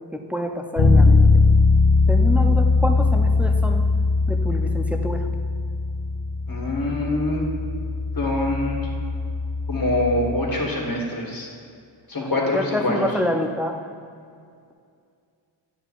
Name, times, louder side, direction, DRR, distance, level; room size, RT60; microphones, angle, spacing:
voice 1, 0.3-1.3 2.1-3.9 4.3-5.3 12.2-13.8, left 1 dB, 5° right, 2 dB, 0.6 m, -27 dB
Bass guitar, 0.8-10.5, left 3 dB, 70° left, 0.9 m, -20 dB
voice 2, 6.5-7.4 8.2-8.8 9.7-11.5 12.1-13.0, left 1 dB, 50° left, -3 dB, 1.8 m, -24 dB
10.0 x 7.0 x 2.5 m, 2.3 s
wide cardioid pair, 65°, 45 cm